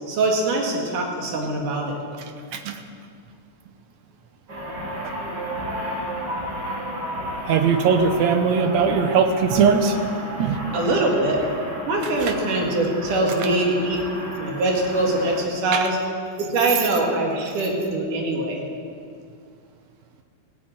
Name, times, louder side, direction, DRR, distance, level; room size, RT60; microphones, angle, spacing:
voice 1, 0.1-2.0 10.7-11.4 11.9-14.0 14.4-16.0 16.4-18.6, right 2 dB, 90° right, 0 dB, 3.6 m, -23 dB
voice 2, 2.5-2.8 5.0-5.1 7.5-10.0 10.4-10.6 12.2-12.3 15.7-15.9, right 6 dB, 70° right, 7 dB, 2.0 m, -20 dB
sound 1, 4.5-15.5, equal, 35° right, 2.7 m, -32 dB
15.5 x 9.0 x 8.9 m, 2.2 s
omnidirectional pair, 3.6 m